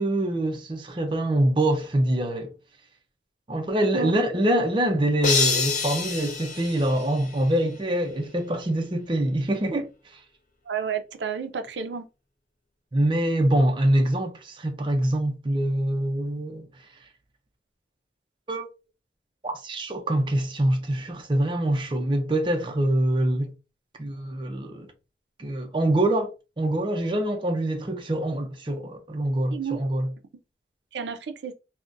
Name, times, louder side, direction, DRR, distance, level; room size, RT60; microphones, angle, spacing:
voice 1, 0.0-2.5 3.5-9.9 12.9-16.7 18.5-18.7 19.4-23.5 24.0-24.9 25.4-30.1, right 1 dB, 25° right, 0.4 m, -25 dB
sound 1, 5.2-7.6, left 5 dB, 45° left, 0.4 m, -27 dB
voice 2, 10.7-12.1 29.5-29.8 30.9-31.5, right 7 dB, 85° right, 0.5 m, -31 dB
3.7 x 2.1 x 2.4 m
head